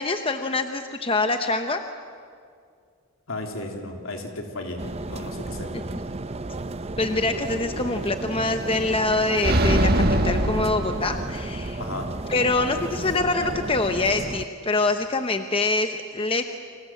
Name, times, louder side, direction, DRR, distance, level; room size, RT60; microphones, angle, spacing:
voice 1, 0.0-1.8 7.0-11.8 12.3-16.5, left 3 dB, 25° left, 7 dB, 0.9 m, -25 dB
voice 2, 3.3-4.8 5.1-5.7 11.8-12.1, left 2 dB, 70° left, 2 dB, 3.7 m, -34 dB
sound 1, 4.8-14.5, right 2 dB, 30° right, 0.6 m, -33 dB
sound 2, 9.4-11.6, right 1 dB, 45° right, 1.7 m, -22 dB
30.0 x 26.0 x 7.6 m, 2.2 s
head